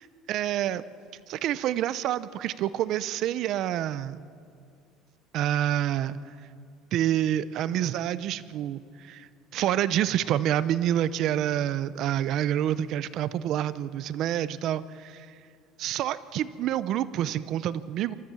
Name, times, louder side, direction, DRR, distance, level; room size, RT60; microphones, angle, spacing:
voice 1, 0.3-0.8 1.3-4.2 5.3-6.2 6.9-15.3 15.8-18.1, right 11 dB, 50° right, 15 dB, 0.6 m, -28 dB
27.5 x 14.0 x 7.1 m, 2.3 s
cardioid pair, 160°, 0 cm